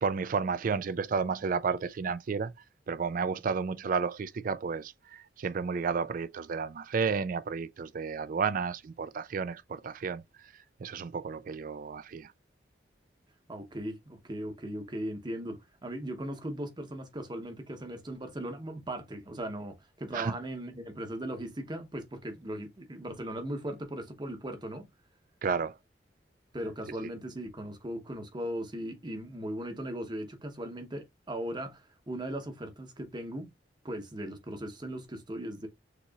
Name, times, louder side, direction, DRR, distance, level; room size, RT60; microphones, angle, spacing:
voice 1, 0.0-2.5 2.9-10.2 10.8-12.3 20.1-20.3 25.4-25.7, right 5 dB, 50° right, 0.4 m, -32 dB
voice 2, 13.5-24.9 26.5-33.5 33.8-35.7, right 1 dB, 25° right, 0.9 m, -38 dB
6.6 x 3.0 x 2.3 m
head